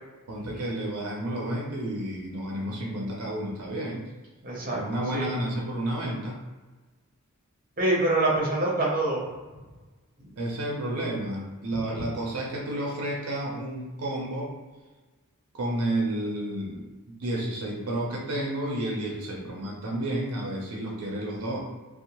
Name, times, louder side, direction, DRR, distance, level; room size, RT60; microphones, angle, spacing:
voice 1, 0.3-4.1 4.7-6.4 10.4-14.5 15.5-16.9 17.2-21.6, right 1 dB, 75° right, -2 dB, 0.5 m, -31 dB
voice 2, 4.4-4.8 5.1-5.3 7.8-9.2, right 2 dB, 40° right, -4 dB, 0.7 m, -25 dB
2.7 x 2.1 x 2.9 m, 1.3 s
head